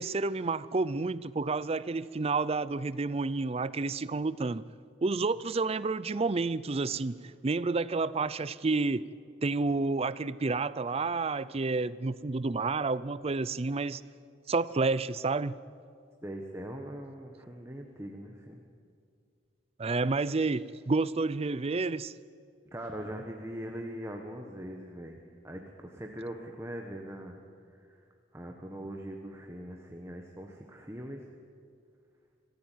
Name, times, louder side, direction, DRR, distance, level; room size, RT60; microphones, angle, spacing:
voice 1, 0.0-4.6 5.0-7.2 7.4-9.0 9.4-14.0 14.5-15.6 19.8-22.1, right 3 dB, 35° right, 0.5 m, -30 dB
voice 2, 16.2-18.6 22.7-27.4 27.7-28.0 28.3-31.3, equal, 15° right, 1.5 m, -41 dB
26.0 x 14.5 x 9.3 m
head